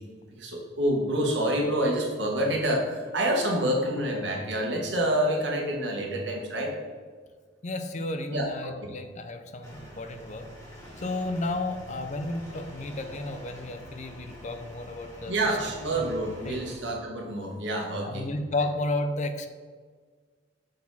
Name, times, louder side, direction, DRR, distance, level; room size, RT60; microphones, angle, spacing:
voice 1, 0.4-6.7 8.3-8.9 15.3-18.2, right 1 dB, 70° right, -1 dB, 1.4 m, -27 dB
voice 2, 7.6-10.5 11.0-15.6 16.0-16.1 16.4-16.6 18.0-19.5, left 2 dB, 40° left, 7 dB, 0.5 m, -32 dB
sound 1, 9.6-16.8, equal, 15° left, 1.7 m, -45 dB
6.4 x 4.3 x 4.1 m, 1.6 s
head